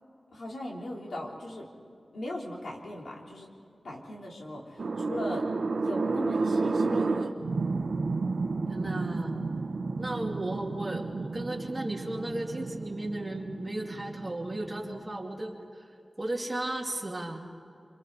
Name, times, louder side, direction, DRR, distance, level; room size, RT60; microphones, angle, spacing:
voice 1, 0.3-1.7 2.1-3.5 3.8-5.4 5.7-7.3, left 1 dB, 90° left, -2 dB, 3.8 m, -38 dB
sound 1, 4.8-15.1, right 3 dB, 75° right, 1.2 m, -31 dB
voice 2, 8.7-9.4 10.0-15.9 16.2-17.4, right 1 dB, 25° right, -1 dB, 2.9 m, -35 dB
27.5 x 27.0 x 4.2 m, 2.7 s
wide cardioid pair, 90°, 0 cm